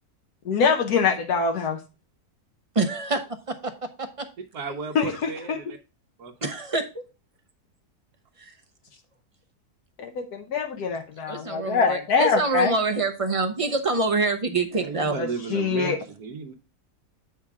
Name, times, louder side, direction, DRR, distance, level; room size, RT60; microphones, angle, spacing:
voice 1, 0.5-1.8 4.9-5.6 10.0-12.7 15.2-16.0, left 5 dB, 80° left, 5 dB, 1.3 m, -24 dB
voice 2, 2.7-4.3 6.4-7.0 8.4-8.5 11.3-15.1, right 3 dB, 40° right, 7 dB, 0.5 m, -26 dB
voice 3, 4.5-5.8 6.2-6.3 14.7-16.5, right 4 dB, 80° right, -1 dB, 1.4 m, -34 dB
8.4 x 5.5 x 3.5 m, 0.30 s
omnidirectional pair, 1.6 m